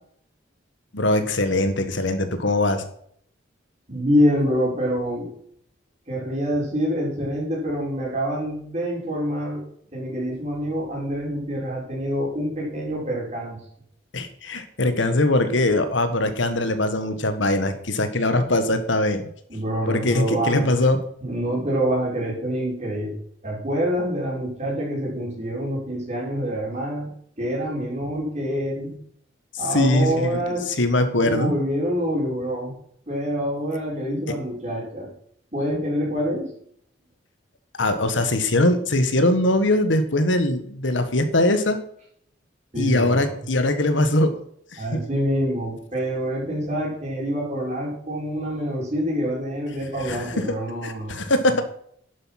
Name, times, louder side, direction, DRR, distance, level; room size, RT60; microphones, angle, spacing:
voice 1, 0.9-2.8 14.1-19.3 19.9-21.0 29.7-31.5 37.8-41.8 42.8-44.4 44.7-45.0 50.0-50.5 50.8-51.6, left 1 dB, 85° left, 9 dB, 1.5 m, -21 dB
voice 2, 3.9-5.3 6.1-9.6 9.9-13.6 19.5-20.9 21.2-23.1 23.4-29.0 29.6-30.7 31.2-32.8 33.1-35.1 35.5-36.5 42.7-43.3 44.8-51.3, equal, 35° right, -4 dB, 5.2 m, -26 dB
11.0 x 7.9 x 5.9 m, 0.66 s
head